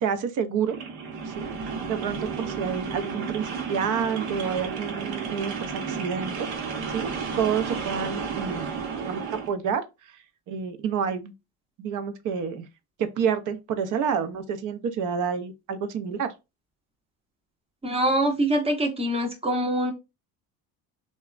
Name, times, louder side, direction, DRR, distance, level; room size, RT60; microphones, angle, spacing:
voice 1, 0.0-0.8 1.2-11.3 11.8-12.7 13.0-16.3, right 7 dB, 50° right, 0.6 m, -29 dB
sound 1, 0.6-9.5, right 5 dB, 75° right, 0.9 m, -32 dB
voice 2, 17.8-19.9, right 1 dB, 15° right, 0.7 m, -24 dB
2.8 x 2.2 x 2.3 m
cardioid pair, 110°, 38 cm